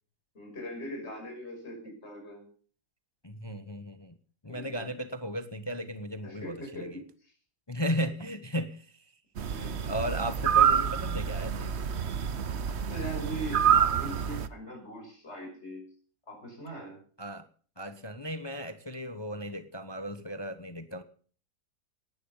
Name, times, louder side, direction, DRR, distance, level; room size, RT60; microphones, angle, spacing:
voice 1, 0.3-2.5 4.5-4.9 6.2-7.3 9.5-9.9 12.9-15.8 16.3-17.0, right 1 dB, 35° left, 2 dB, 6.2 m, -41 dB
voice 2, 3.2-4.1 4.4-7.0 7.7-8.9 9.9-11.7 17.2-17.5 17.8-21.0, equal, 20° left, 10 dB, 0.8 m, -35 dB
sound 1, 9.4-14.5, right 8 dB, 50° right, 0.9 m, -27 dB
18.0 x 11.5 x 5.6 m, 0.44 s
omnidirectional pair, 1.9 m